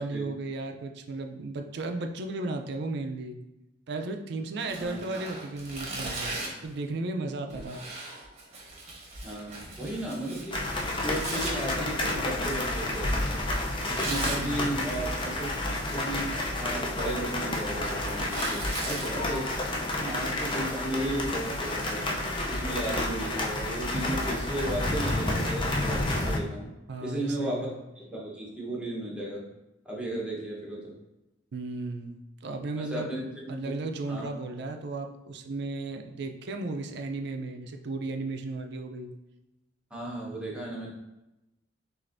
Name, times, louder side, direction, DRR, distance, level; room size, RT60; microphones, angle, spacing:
voice 1, 0.0-3.4 3.9-7.8 14.4-14.8 26.9-27.8 31.5-32.1 32.4-39.1, right 2 dB, 60° right, 5 dB, 0.4 m, -35 dB
Tearing, 4.6-6.7 7.5-11.5 13.6-14.4 15.7-16.2 16.6-19.1, right 2 dB, 35° right, 0.9 m, -39 dB
voice 2, 9.2-13.4 13.9-15.5 15.9-16.3 16.6-22.0 22.4-26.7 27.0-27.7 28.0-29.5 29.8-30.9 32.8-33.7 34.1-34.3 39.9-40.9, right 1 dB, 5° right, -4 dB, 0.9 m, -35 dB
sound 1, 10.5-26.4, left 1 dB, 25° left, 0.5 m, -30 dB
6.4 x 2.5 x 2.5 m, 0.95 s
head